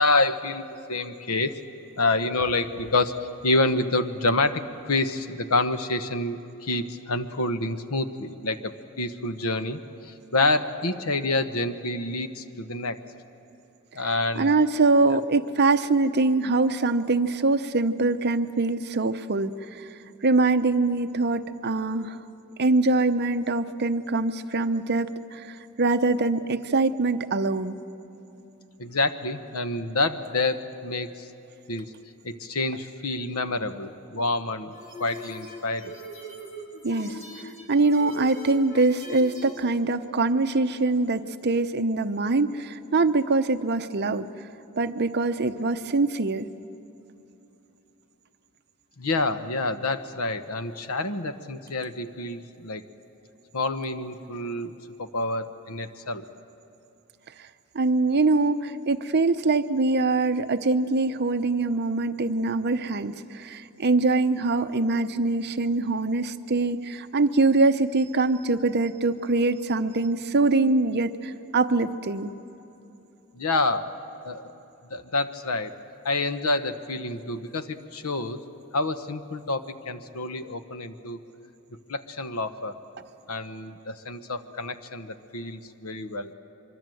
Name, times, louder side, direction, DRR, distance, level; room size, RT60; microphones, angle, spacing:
voice 1, 0.0-1.5 2.0-3.1 3.4-13.0 13.9-14.5 28.8-31.3 31.7-31.9 32.2-35.9 49.0-52.8 53.5-54.7 55.0-56.2 73.3-74.0 74.2-74.5 74.9-75.7 76.0-78.4 78.7-81.2 81.9-82.7 83.3-86.3, left 2 dB, 70° left, 10 dB, 1.1 m, -28 dB
voice 2, 14.4-19.9 20.2-22.2 22.6-27.8 36.8-44.3 44.8-46.5 57.4-57.5 57.7-72.3, right 3 dB, 50° right, 10 dB, 0.8 m, -23 dB
sound 1, 34.7-39.7, right 1 dB, 30° left, 3.4 m, -41 dB
24.5 x 24.5 x 7.8 m, 2.9 s
head